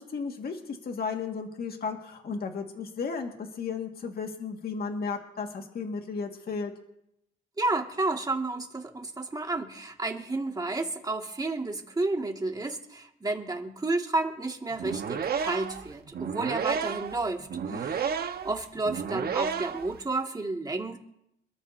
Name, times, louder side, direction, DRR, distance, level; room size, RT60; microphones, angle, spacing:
voice 1, 0.0-6.7 17.7-17.8, left 5 dB, 50° left, 3 dB, 2.0 m, -34 dB
voice 2, 7.6-18.1 18.4-21.0, right 2 dB, 20° right, 2 dB, 2.1 m, -31 dB
sound 1, 14.7-20.0, right 7 dB, 50° right, 1.3 m, -32 dB
26.5 x 13.0 x 2.8 m, 0.81 s
cardioid pair, 90°, 20 cm